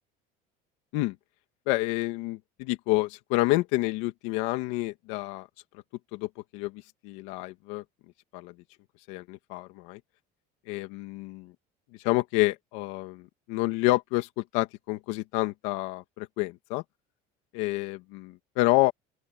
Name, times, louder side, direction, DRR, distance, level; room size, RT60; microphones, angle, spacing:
voice 1, 1.7-5.5 6.1-7.8 8.3-8.5 9.1-10.0 10.7-11.5 12.0-16.8 17.5-18.9, left 20 dB, 80° left, 2.1 m, -28 dB
open air
cardioid pair, 175°, 19 cm